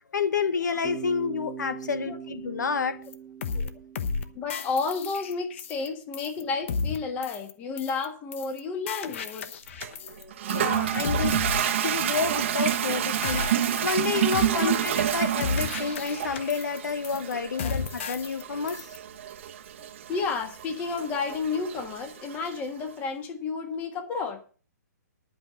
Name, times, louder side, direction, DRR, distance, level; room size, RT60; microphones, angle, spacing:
voice 1, 0.1-3.0 9.8-13.5 13.8-18.8, left 5 dB, 85° left, 1.2 m, -29 dB
Bass guitar, 0.8-4.9, right 8 dB, 5° right, 1.3 m, -41 dB
sound 1, 3.1-3.2 3.4-3.7 4.0-4.2 4.5-5.9 6.1-6.4 6.7-7.0 7.2-7.5 7.8-8.1 8.3-8.6 8.9-10.2 10.5-10.8 11.0-12.4 12.7-13.0 13.2-14.1 14.3-14.6 14.9-15.1 15.4-16.8 17.0-17.3 17.6-18.4 18.7-19.0, left 5 dB, 45° left, 1.0 m, -33 dB
voice 2, 4.3-9.5 10.9-11.2 14.2-14.8 17.6-17.7 20.1-24.4, left 4 dB, 15° left, 1.5 m, -32 dB
Toilet flush, 9.8-22.6, right 11 dB, 40° right, 1.0 m, -29 dB
11.0 x 5.5 x 8.7 m
hypercardioid pair, 165°, 9 cm